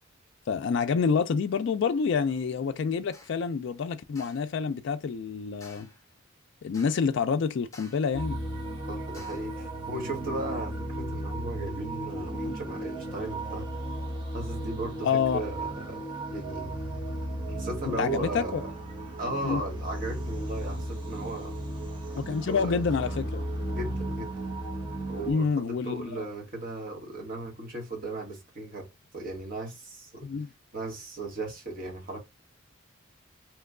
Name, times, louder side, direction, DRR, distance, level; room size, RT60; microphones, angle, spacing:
voice 1, 0.5-5.9 6.6-8.4 15.0-15.4 17.8-18.6 19.4-19.6 22.2-23.4 25.3-26.3 30.2-30.5, left 5 dB, 60° left, 0.3 m, -28 dB
sound 1, 3.1-3.4 4.2-4.5 5.6-6.1 6.7-7.2 7.7-8.2 9.1-9.6, left 2 dB, 15° left, 0.8 m, -52 dB
sound 2, 8.1-25.3, right 1 dB, 25° right, 0.8 m, -35 dB
voice 2, 8.9-13.7 14.3-15.1 15.3-16.0 16.3-16.7 17.5-18.7 19.2-21.6 22.2-23.2 23.7-24.3 25.1-28.9 29.1-30.2 30.7-32.2, right 2 dB, 45° right, 1.2 m, -36 dB
3.0 x 2.2 x 3.5 m
head